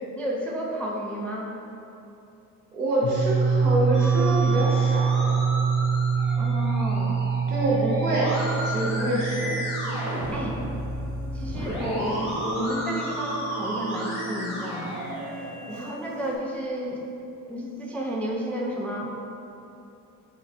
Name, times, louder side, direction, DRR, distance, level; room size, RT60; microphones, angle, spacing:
voice 1, 0.2-1.5 6.4-7.3 10.3-10.6 11.3-15.0 15.7-17.0 17.5-19.2, equal, 5° left, -2 dB, 0.4 m, -31 dB
voice 2, 2.7-5.3 7.5-8.4 8.6-9.6, right 1 dB, 90° right, -5 dB, 0.7 m, -26 dB
sound 1, 3.0-13.6, right 6 dB, 65° left, 0.6 m, -26 dB
Musical instrument, 3.9-15.9, equal, 90° left, 1.5 m, -33 dB
Human voice, 8.4-16.4, right 3 dB, 50° right, 0.8 m, -40 dB
4.6 x 4.2 x 2.3 m, 2.8 s
hypercardioid pair, 50°, 45 cm